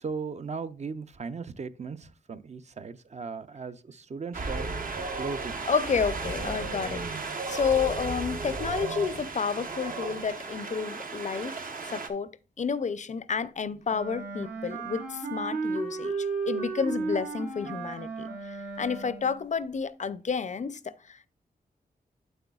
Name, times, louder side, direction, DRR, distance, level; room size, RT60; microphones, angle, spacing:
voice 1, 0.0-4.7 5.2-5.7, right 5 dB, 45° right, 0.5 m, -37 dB
Wind, 4.3-12.1, right 3 dB, 65° right, 1.0 m, -34 dB
voice 2, 5.7-12.3 12.6-21.3, left 6 dB, 50° left, 0.5 m, -31 dB
Wind instrument woodwind instrument, 13.8-19.4, right 4 dB, 85° right, 4.0 m, -34 dB
8.1 x 7.8 x 2.3 m
wide cardioid pair, 105°, 16 cm